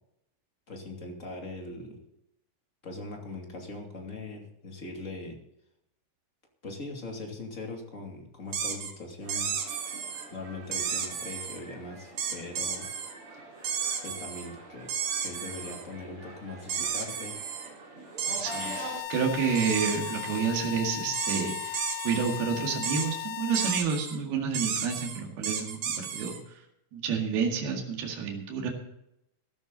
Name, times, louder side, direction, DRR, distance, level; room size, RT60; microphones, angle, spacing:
voice 1, 0.7-2.0 2.8-5.4 6.6-9.6 10.3-12.9 14.0-14.9 15.2-17.3, left 2 dB, 25° left, 1 dB, 2.3 m, -40 dB
sound 1, 8.5-8.9 9.3-10.3 10.7-11.6 12.2-13.1 13.6-14.5 14.9-15.8 16.7-17.7 18.2-18.8 19.6-20.4 21.1-22.4 22.8-23.1 23.5-24.2 24.5-26.4, right 7 dB, 55° right, 2.4 m, -33 dB
sound 2, 9.2-19.0, right 3 dB, 35° right, 3.5 m, -46 dB
voice 2, 18.3-26.4 26.9-28.7, right 6 dB, 75° right, 1 dB, 4.0 m, -30 dB
sound 3, 18.5-23.8, left 15 dB, 90° left, 1.9 m, -37 dB
14.5 x 12.5 x 4.0 m, 0.82 s
omnidirectional pair, 4.5 m